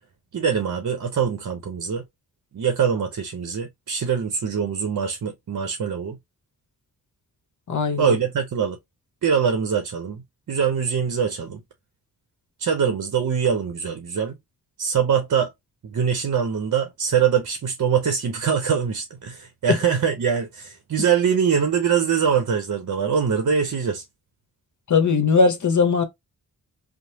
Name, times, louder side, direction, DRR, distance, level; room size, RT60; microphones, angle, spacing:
voice 1, 0.3-2.0 2.5-6.2 8.0-8.8 9.2-11.6 12.6-14.4 14.8-15.5 15.8-24.0, right 7 dB, 50° right, 0.7 m, -23 dB
voice 2, 7.7-8.2 24.9-26.0, left 4 dB, 50° left, 0.9 m, -19 dB
3.0 x 2.0 x 2.7 m
supercardioid pair, 40°, 39 cm